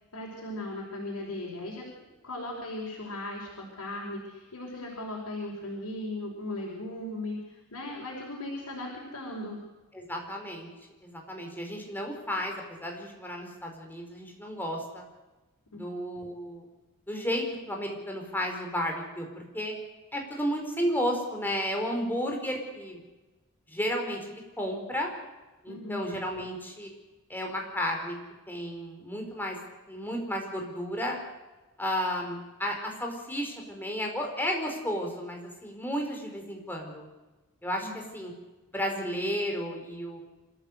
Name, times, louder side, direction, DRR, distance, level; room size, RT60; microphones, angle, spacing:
voice 1, 0.1-1.8 2.2-9.6 15.7-16.0 25.7-26.1 37.8-38.0, left 1 dB, 75° left, -4 dB, 5.2 m, -37 dB
voice 2, 9.9-10.7 11.0-15.0 15.7-16.6 17.1-19.7 20.1-23.0 23.7-25.1 25.6-26.9 27.3-28.2 28.5-29.6 29.9-31.2 31.8-37.1 37.6-38.3 38.7-40.2, equal, 10° left, 1 dB, 4.8 m, -33 dB
26.5 x 14.5 x 8.2 m, 1.2 s
head